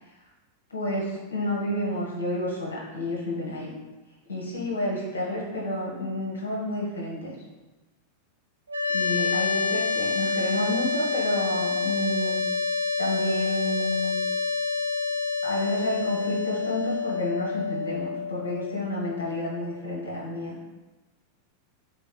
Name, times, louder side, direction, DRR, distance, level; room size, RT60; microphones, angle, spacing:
voice 1, 0.7-3.7 4.3-7.4 8.9-12.4 13.0-14.1 15.4-20.6, left 1 dB, 75° left, -4 dB, 0.9 m, -30 dB
sound 1, 8.7-19.8, left 4 dB, 75° right, 0.3 m, -28 dB
3.8 x 3.1 x 2.2 m, 1.2 s
figure-of-eight pair, 90°, 0 cm